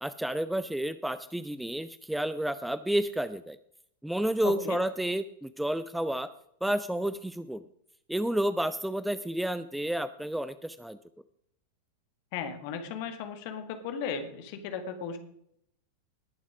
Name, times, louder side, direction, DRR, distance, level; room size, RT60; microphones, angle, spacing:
voice 1, 0.0-3.6 4.0-6.3 6.6-7.6 8.1-11.0, right 1 dB, 5° right, 14 dB, 0.4 m, -30 dB
voice 2, 4.4-4.8 12.3-15.2, left 6 dB, 45° left, 7 dB, 1.9 m, -36 dB
19.5 x 7.2 x 5.0 m, 0.72 s
figure-of-eight pair, 90°, 0 cm